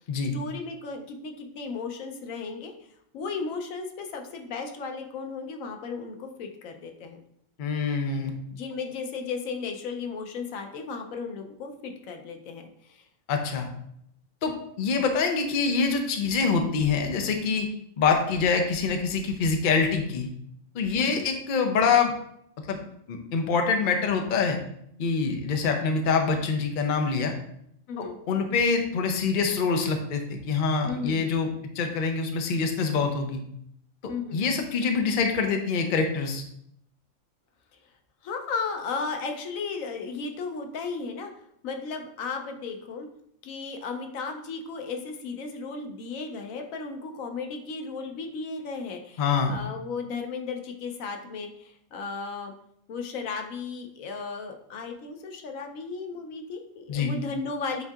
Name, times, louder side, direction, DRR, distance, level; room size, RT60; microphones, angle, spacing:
voice 1, 0.3-2.7 3.1-7.2 8.5-13.0 21.0-21.3 27.9-28.2 30.8-31.3 34.1-34.4 38.2-41.3 41.6-43.1 43.4-52.5 52.9-57.8, left 4 dB, 90° left, 4 dB, 1.1 m, -35 dB
voice 2, 7.6-8.3 13.3-13.7 14.4-14.5 14.8-17.7 18.0-20.3 20.7-22.1 22.7-22.8 23.1-24.6 25.0-27.3 28.0-31.5 31.8-33.4 34.3-36.4 49.2-49.6 56.9-57.1, left 5 dB, 50° left, 4 dB, 0.6 m, -25 dB
8.1 x 2.7 x 2.3 m, 0.71 s
omnidirectional pair, 1.4 m